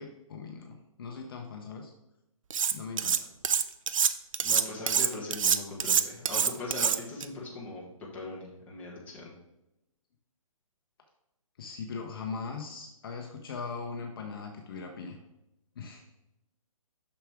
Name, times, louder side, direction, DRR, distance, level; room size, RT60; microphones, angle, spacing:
voice 1, 0.0-1.9 2.7-3.3 11.6-15.2 15.8-16.0, left 5 dB, 40° left, 2 dB, 0.9 m, -40 dB
Cutlery silverware, 2.5-3.2 3.4-7.3, right 7 dB, 65° right, 0.5 m, -25 dB
voice 2, 4.4-7.8 8.1-9.3, left 2 dB, 10° left, -5 dB, 1.3 m, -40 dB
7.0 x 6.0 x 3.6 m, 0.89 s
hypercardioid pair, 160°, 18 cm